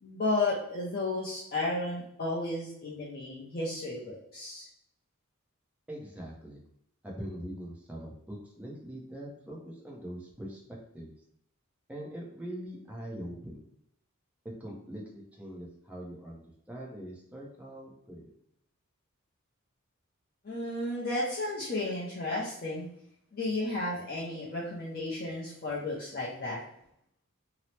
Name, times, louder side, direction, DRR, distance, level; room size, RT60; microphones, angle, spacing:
voice 1, 0.0-4.7 20.4-22.9 23.3-26.6, left 2 dB, 45° left, -5 dB, 0.5 m, -33 dB
voice 2, 5.9-6.6 7.0-10.6 10.9-11.1 11.9-13.5 14.4-18.3, equal, 5° right, -3 dB, 0.6 m, -42 dB
2.8 x 2.0 x 3.1 m, 0.74 s
head